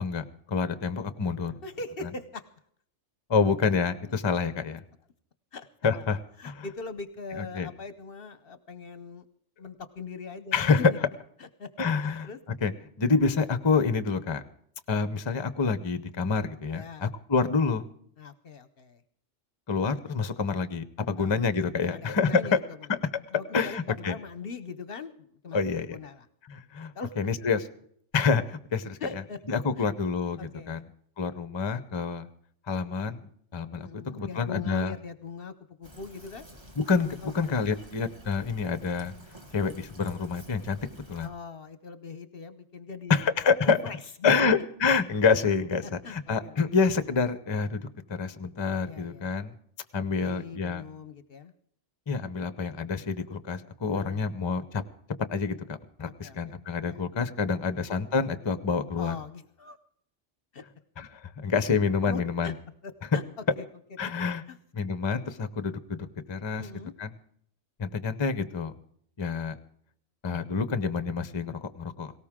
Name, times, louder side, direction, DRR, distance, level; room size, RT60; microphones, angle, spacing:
voice 1, 0.0-1.5 3.3-4.8 5.8-6.2 6.4-6.6 7.4-7.7 10.5-10.9 11.8-12.3 12.6-12.7 13.0-14.4 14.9-17.8 19.7-22.6 22.9-23.0 23.5-24.2 25.5-26.0 26.5-26.9 27.2-27.7 28.1-29.2 29.5-30.8 31.2-32.3 32.7-33.2 33.5-33.9 34.1-34.9 36.8-37.1 37.3-39.1 39.5-40.8 41.1-41.3 43.1-43.8 44.2-49.5 49.9-50.8 52.1-54.8 55.3-59.2 61.0-62.5 64.0-64.4 64.7-66.0 66.3-66.7 67.0-67.1 67.8-68.7 69.2-69.6 70.2-72.1, left 5 dB, 25° left, 12 dB, 0.7 m, -27 dB
voice 2, 1.6-2.4 5.5-6.1 6.4-9.2 9.6-11.0 11.4-11.7 12.0-12.4 16.7-17.1 18.2-19.0 21.2-21.3 21.8-22.6 23.3-25.6 25.9-26.3 26.9-27.2 29.0-29.4 29.8-29.9 30.4-30.8 33.8-35.5 35.8-36.5 37.2-37.3 41.2-43.3 43.6-44.0 44.2-44.5 46.0-46.6 48.8-49.3 50.2-51.5 54.0-54.3 56.2-56.5 56.9-57.0 57.6-57.7 59.0-59.8 60.5-60.6 62.0-62.5 62.8-63.2 63.6-63.7 64.5-64.6 66.6-66.9, left 4 dB, 55° left, 12 dB, 0.9 m, -41 dB
Fill (with liquid), 35.8-41.3, equal, 20° right, 1.4 m, -50 dB
18.5 x 17.5 x 3.7 m, 0.66 s
omnidirectional pair, 1.3 m